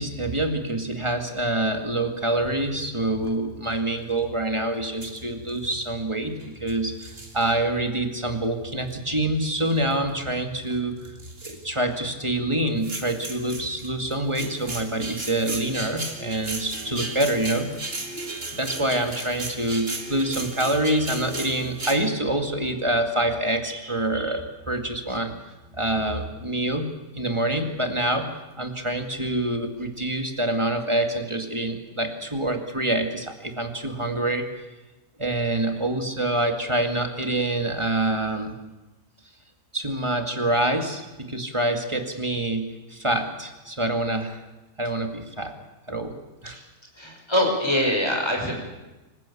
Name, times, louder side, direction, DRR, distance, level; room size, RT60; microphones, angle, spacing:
voice 1, 0.0-6.3 6.6-11.0 11.4-17.7 18.6-25.3 25.8-26.9 27.2-28.3 28.6-34.5 35.2-38.5 39.7-44.4 44.8-45.5 45.9-46.1 46.4-46.6, right 1 dB, 20° right, 5 dB, 2.2 m, -26 dB
sound 1, 2.4-22.0, right 2 dB, 35° right, 2.6 m, -37 dB
voice 2, 47.0-48.5, left 1 dB, 15° left, 1 dB, 5.6 m, -24 dB
25.5 x 15.5 x 8.5 m, 1.1 s
omnidirectional pair, 1.7 m